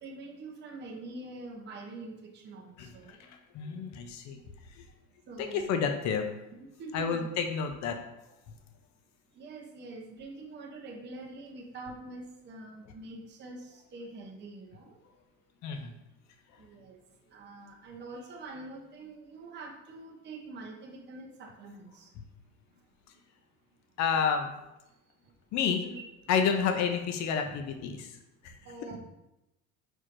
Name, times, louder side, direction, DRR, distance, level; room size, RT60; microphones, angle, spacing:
voice 1, 0.0-3.3 5.3-5.8 6.6-7.3 9.3-15.0 16.6-17.0 17.3-22.1 25.8-26.0 27.5-27.6 28.6-29.0, right 2 dB, 35° right, 0 dB, 0.7 m, -45 dB
voice 2, 2.8-4.4 4.7-4.9 5.4-6.3 6.9-8.0 15.6-15.9 24.0-24.5 25.5-25.8 26.3-28.2 28.4-28.5, left 6 dB, 60° left, 6 dB, 0.6 m, -30 dB
4.6 x 4.3 x 2.5 m, 0.92 s
cardioid pair, 120°, 31 cm